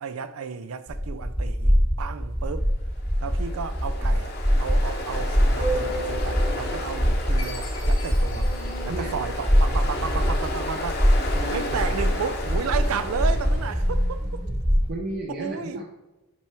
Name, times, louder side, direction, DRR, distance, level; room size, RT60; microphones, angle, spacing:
voice 1, 0.0-2.7 3.2-4.3 4.6-8.5 8.8-11.1 11.5-14.4 15.3-15.8, right 6 dB, 90° right, 0.4 m, -33 dB
sound 1, 0.9-14.9, equal, 10° right, 0.8 m, -24 dB
Ocean, 3.0-14.1, left 1 dB, 50° left, 0.9 m, -33 dB
Chime, 7.4-9.9, left 4 dB, 75° left, 1.2 m, -44 dB
voice 2, 11.3-12.3 14.9-15.8, right 1 dB, 50° right, 0.7 m, -34 dB
6.0 x 4.7 x 4.4 m
head